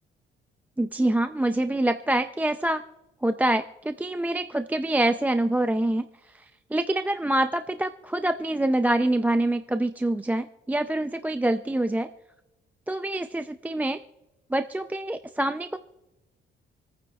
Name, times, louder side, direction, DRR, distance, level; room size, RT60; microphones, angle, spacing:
voice 1, 0.8-2.8 3.2-6.0 6.4-12.1 12.9-14.0 14.5-15.8, right 1 dB, 10° right, 8 dB, 0.5 m, -25 dB
28.0 x 9.4 x 2.4 m, 0.99 s
cardioid pair, 90°, 20 cm